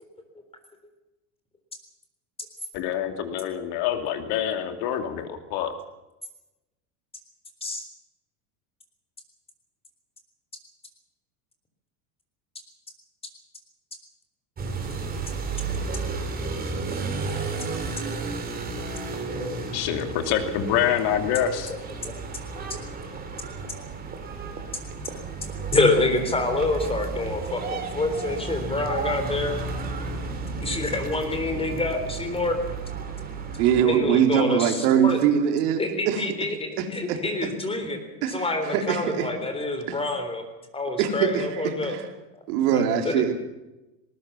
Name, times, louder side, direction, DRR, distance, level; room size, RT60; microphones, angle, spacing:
voice 1, 2.7-5.7 19.7-21.7, left 9 dB, 55° left, 7 dB, 2.8 m, -26 dB
sound 1, 14.6-33.8, right 4 dB, 20° right, 3.3 m, -33 dB
voice 2, 19.3-19.7 22.0-22.1 22.5-22.6 25.7-29.5 30.6-32.6 33.8-35.2 35.8-40.4 40.7-42.0 42.3-42.4 42.7-43.3, left 2 dB, 10° left, 7 dB, 3.7 m, -27 dB
voice 3, 33.6-35.8 36.1-36.2 36.8-37.2 38.2-38.4 38.7-39.3 39.9-40.0 41.0-42.1 42.5-43.3, right 9 dB, 70° right, 5 dB, 3.8 m, -22 dB
19.5 x 19.0 x 7.3 m, 0.99 s
supercardioid pair, 150°, 46 cm